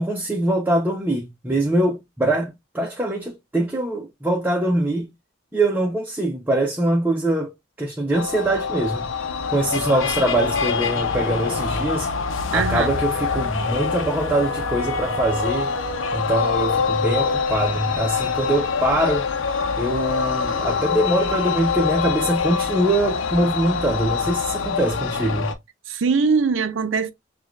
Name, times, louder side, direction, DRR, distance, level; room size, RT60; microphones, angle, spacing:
voice 1, 0.0-5.1 5.5-7.5 7.8-9.1 9.5-12.1 12.5-15.7 16.1-19.3 19.8-25.5, right 1 dB, 10° right, 0.7 m, -23 dB
sound 1, 8.1-25.5, left 5 dB, 90° left, 0.7 m, -25 dB
voice 2, 12.5-12.9 25.9-27.1, right 5 dB, 70° right, 0.5 m, -21 dB
6.2 x 2.4 x 2.3 m
head